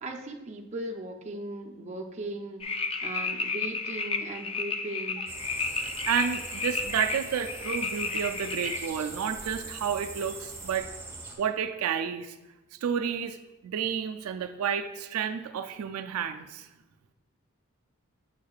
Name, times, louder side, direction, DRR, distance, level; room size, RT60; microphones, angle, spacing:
voice 1, 0.0-2.6 3.0-5.3, right 2 dB, 30° right, 1 dB, 0.6 m, -38 dB
sound 1, 2.6-8.9, left 4 dB, 25° left, 0.4 m, -32 dB
sound 2, 5.3-11.3, right 3 dB, 15° right, 1.1 m, -42 dB
voice 2, 6.1-10.9 11.4-12.4 12.7-13.4 13.6-16.7, right 7 dB, 85° right, 7 dB, 0.4 m, -30 dB
7.3 x 6.5 x 2.3 m, 1.1 s
head